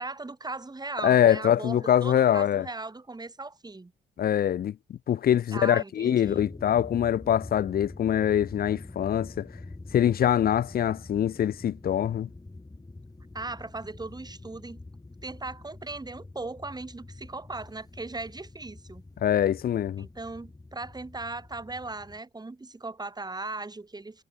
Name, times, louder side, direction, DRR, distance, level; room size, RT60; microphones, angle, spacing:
voice 1, 0.0-3.9 5.5-6.4 13.3-14.8 15.2-19.0 20.0-24.2, right 3 dB, 20° right, 1.7 m, -38 dB
voice 2, 1.0-2.7 4.2-9.5 9.9-12.3 19.2-20.1, left 10 dB, 55° left, 0.5 m, -24 dB
sound 1, 6.2-22.2, left 2 dB, 20° left, 2.2 m, -45 dB
supercardioid pair, 50°, 19 cm